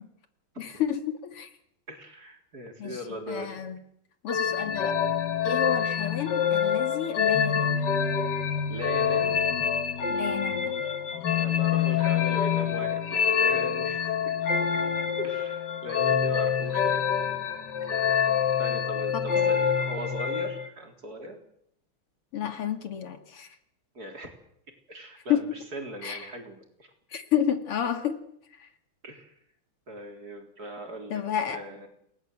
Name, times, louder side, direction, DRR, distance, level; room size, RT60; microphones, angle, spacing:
voice 1, 0.6-1.5 2.8-3.0 3.3-3.8 4.2-5.0 5.4-7.8 10.1-10.7 19.1-19.6 22.3-23.5 25.3-25.5 26.0-26.3 27.1-28.2 28.6-28.7 31.1-31.6, left 9 dB, 85° left, 7 dB, 3.1 m, -30 dB
voice 2, 1.9-3.6 5.7-6.1 8.7-9.5 11.4-14.3 15.2-17.1 18.6-21.4 23.9-24.3 24.9-26.9 29.0-29.3 29.9-31.2 31.5-31.9, equal, 45° right, 3 dB, 4.3 m, -39 dB
sound 1, 4.3-20.7, left 7 dB, 55° left, 2.0 m, -26 dB
29.0 x 19.0 x 8.0 m, 0.74 s
omnidirectional pair, 2.4 m